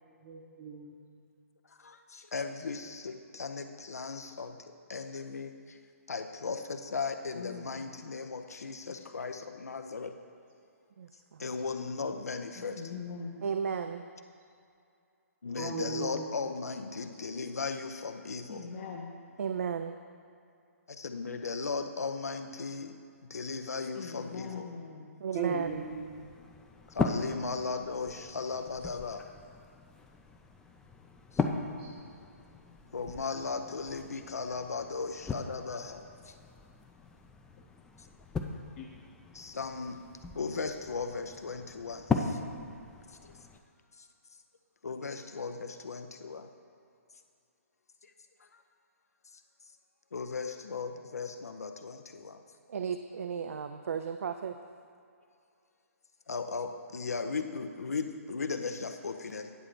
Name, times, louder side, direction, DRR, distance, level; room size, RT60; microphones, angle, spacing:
voice 1, 0.2-1.2 2.2-2.3 2.6-2.7 8.2-8.3 11.5-11.7 15.5-16.5 25.3-26.3 27.4-27.5 31.8-32.0, right 5 dB, 30° right, -2 dB, 0.8 m, -38 dB
voice 2, 1.8-5.8 6.1-10.1 11.4-12.8 15.4-18.7 20.9-23.0 23.2-24.7 26.9-29.2 31.3-31.4 32.9-36.3 39.3-40.0 40.3-42.4 43.2-43.3 44.8-46.5 50.1-52.4 56.3-59.5, left 4 dB, 80° left, 7 dB, 0.6 m, -37 dB
voice 3, 7.3-7.9 12.6-13.5 18.5-19.1 23.9-25.1 38.8-38.9, left 5 dB, 40° left, -2 dB, 0.7 m, -42 dB
voice 4, 11.0-11.5 13.4-14.0 19.4-19.9 25.2-25.7 52.7-54.6, right 7 dB, 65° right, 8 dB, 0.4 m, -34 dB
sound 1, 25.6-43.6, left 4 dB, 10° left, 0.4 m, -39 dB
9.1 x 3.8 x 6.7 m, 2.5 s
figure-of-eight pair, 135°, 8 cm